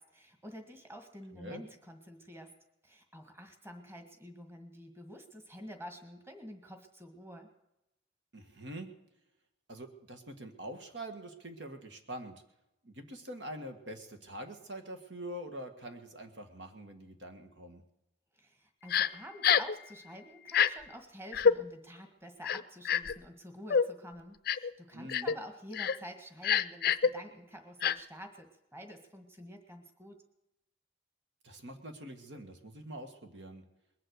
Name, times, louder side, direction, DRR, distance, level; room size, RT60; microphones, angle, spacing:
voice 1, 0.0-2.6 2.8-7.5 18.3-30.2, equal, 15° right, 5 dB, 1.6 m, -49 dB
voice 2, 1.3-1.6 8.3-8.9 9.7-12.3 12.8-17.8 24.9-25.3 31.4-33.6, right 1 dB, 70° right, 6 dB, 1.7 m, -45 dB
Crying sobbing, 18.9-19.1 19.4-19.8 20.5-20.7 21.3-21.5 22.4-23.1 23.7-23.9 24.5-24.7 25.1-25.4 25.7-26.0 26.4-27.1 27.8-27.9, left 7 dB, 55° left, 0.5 m, -26 dB
21.0 x 7.7 x 8.1 m, 0.90 s
head